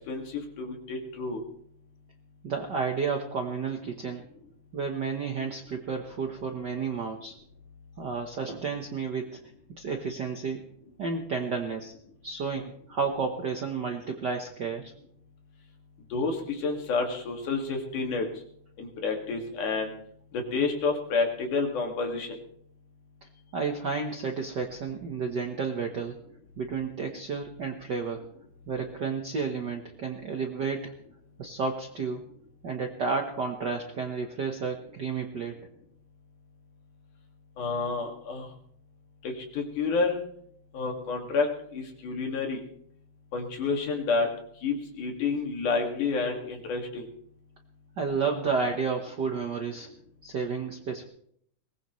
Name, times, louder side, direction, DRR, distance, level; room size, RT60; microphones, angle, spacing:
voice 1, 0.1-1.4 16.1-18.3 18.8-19.9 20.5-22.3 37.6-38.5 39.2-40.2 40.7-42.6 43.3-44.3 44.6-47.1, left 4 dB, 75° left, 2 dB, 3.7 m, -29 dB
voice 2, 2.4-4.2 4.7-7.3 8.0-9.4 9.8-10.6 11.0-11.9 12.2-14.9 23.5-26.2 26.6-28.2 28.7-30.9 31.4-32.2 32.6-35.6 48.0-49.9 50.2-51.0, right 5 dB, 60° right, 3 dB, 1.1 m, -31 dB
22.0 x 19.5 x 3.2 m, 0.67 s
omnidirectional pair, 3.6 m